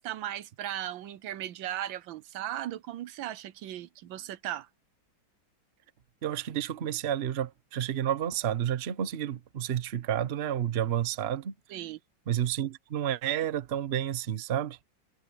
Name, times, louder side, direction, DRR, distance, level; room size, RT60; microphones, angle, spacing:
voice 1, 0.0-4.7 11.7-12.0, right 12 dB, 80° right, 1.4 m, -37 dB
voice 2, 6.2-11.8 12.3-14.8, right 10 dB, 45° right, 0.9 m, -30 dB
omnidirectional pair, 2.2 m